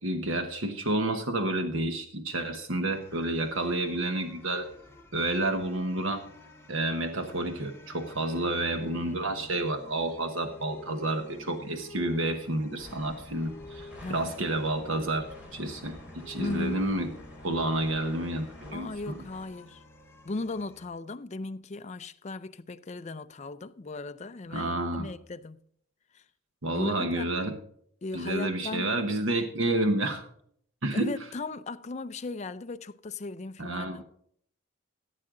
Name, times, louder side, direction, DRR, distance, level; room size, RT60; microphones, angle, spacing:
voice 1, 0.0-4.7 5.1-6.2 6.7-15.3 15.5-17.1 17.4-19.2 24.5-25.1 26.6-27.5 28.1-30.2 30.8-31.1 33.6-34.0, right 1 dB, 70° right, 1.2 m, -30 dB
sound 1, 2.9-20.9, left 2 dB, 10° left, 1.3 m, -49 dB
sound 2, 12.8-19.5, left 1 dB, 5° right, 2.6 m, -50 dB
voice 2, 14.0-14.3 16.4-16.9 18.7-19.8 20.2-25.6 26.1-26.2 26.7-27.3 28.0-28.9 30.9-34.0, left 3 dB, 35° left, 0.5 m, -37 dB
15.0 x 8.5 x 3.8 m
head